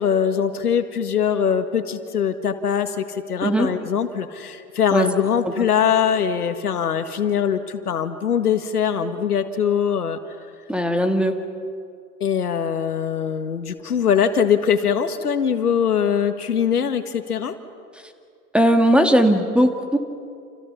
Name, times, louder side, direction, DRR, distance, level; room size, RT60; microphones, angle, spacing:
voice 1, 0.0-10.2 12.2-17.6, left 8 dB, 80° left, 9 dB, 1.8 m, -22 dB
voice 2, 10.7-11.4 18.5-20.0, equal, ahead, 6 dB, 2.1 m, -18 dB
29.5 x 28.5 x 5.7 m, 2.3 s
figure-of-eight pair, 100°, 45 cm